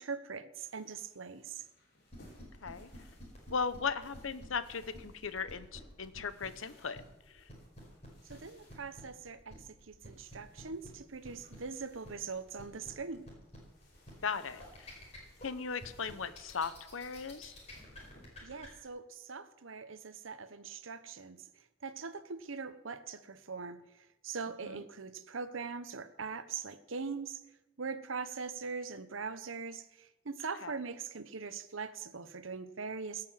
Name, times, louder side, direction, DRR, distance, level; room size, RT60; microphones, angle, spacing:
voice 1, 0.0-1.6 8.3-13.3 18.4-27.4 27.8-33.3, right 5 dB, 80° right, 12 dB, 0.9 m, -42 dB
sound 1, 0.5-18.5, left 1 dB, 50° left, 4.8 m, -65 dB
sound 2, 2.1-18.7, equal, 30° left, 5.1 m, -51 dB
voice 2, 3.5-7.0 7.3-7.4 14.2-14.9 15.4-17.5 24.6-24.8 30.6-30.7, left 5 dB, 85° left, 13 dB, 0.9 m, -37 dB
17.5 x 6.9 x 7.5 m, 0.95 s
head